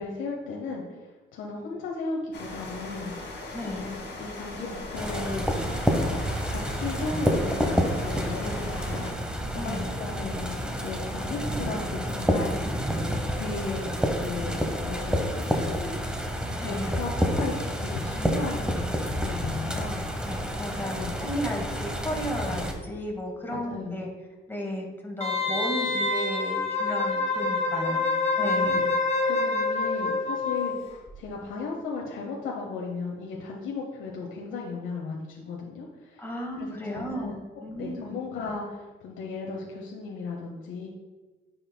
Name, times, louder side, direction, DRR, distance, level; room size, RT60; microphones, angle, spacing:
voice 1, 0.0-6.2 6.5-13.0 13.3-16.3 16.6-20.3 20.9-21.1 23.5-24.0 28.4-28.9 29.2-30.8 31.1-36.3 36.5-37.4 37.8-40.9, left 4 dB, 80° left, -2 dB, 1.0 m, -36 dB
sound 1, 2.3-9.1, left 2 dB, 60° left, 2.0 m, -39 dB
voice 2, 3.5-3.8 9.5-9.9 16.6-16.9 20.2-24.1 24.5-28.0 28.4-28.8 36.2-37.3 37.6-38.2, equal, 10° left, 0 dB, 1.7 m, -34 dB
sound 2, 4.9-22.7, equal, 5° right, 0.8 m, -29 dB
Wind instrument woodwind instrument, 25.2-30.8 31.1-31.2, left 3 dB, 35° left, 1.5 m, -26 dB
9.3 x 5.5 x 2.2 m, 1.2 s
cardioid pair, 90°, 20 cm